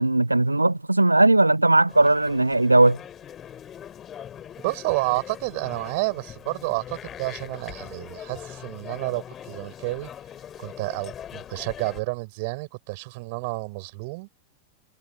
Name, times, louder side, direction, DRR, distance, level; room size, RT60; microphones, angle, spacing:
voice 1, 0.0-3.0, right 2 dB, 85° right, 0.5 m, -18 dB
sound 1, 1.9-12.0, left 9 dB, 25° left, 4.0 m, -41 dB
voice 2, 4.6-10.1 10.6-14.3, right 27 dB, 50° right, 6.3 m, -30 dB
figure-of-eight pair, 90°, 0 cm